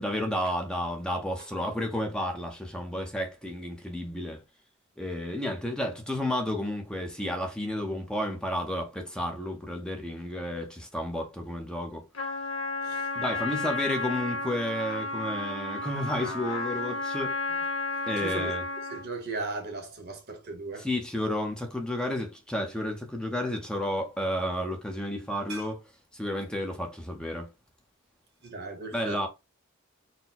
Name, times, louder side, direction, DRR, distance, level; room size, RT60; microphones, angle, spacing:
voice 1, 0.0-4.4 5.0-12.0 13.2-17.4 18.1-18.6 20.8-25.8 26.1-27.5 28.9-29.3, left 1 dB, 5° left, 0.7 m, -31 dB
Trumpet, 12.1-19.1, left 3 dB, 75° left, 1.3 m, -32 dB
voice 2, 18.2-18.5 18.9-20.9 25.5-25.6 28.4-29.2, right 3 dB, 50° right, 1.1 m, -37 dB
4.1 x 2.2 x 4.2 m
head